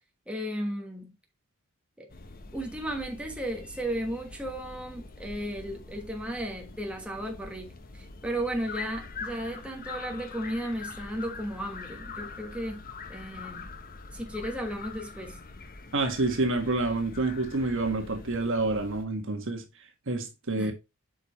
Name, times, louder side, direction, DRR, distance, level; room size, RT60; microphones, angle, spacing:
voice 1, 0.3-1.1 2.0-2.1 2.5-12.8 13.1-13.7 14.1-15.4 20.6-20.7, right 1 dB, 5° right, 1.3 m, -35 dB
sound 1, 2.1-19.0, left 4 dB, 45° left, 0.9 m, -44 dB
voice 2, 15.9-19.6 20.1-20.7, right 2 dB, 60° right, 1.5 m, -28 dB
8.0 x 5.1 x 3.0 m
head